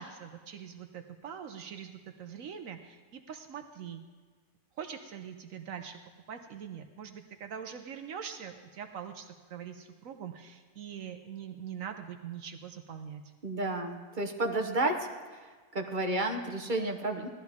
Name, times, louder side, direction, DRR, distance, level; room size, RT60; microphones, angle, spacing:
voice 1, 0.0-4.0 4.8-6.0 6.3-13.2, right 8 dB, 70° right, 7 dB, 1.1 m, -43 dB
voice 2, 13.4-15.1 15.3-17.3, right 2 dB, 40° right, 3 dB, 1.0 m, -31 dB
17.0 x 12.5 x 3.5 m, 1.5 s
omnidirectional pair, 1.5 m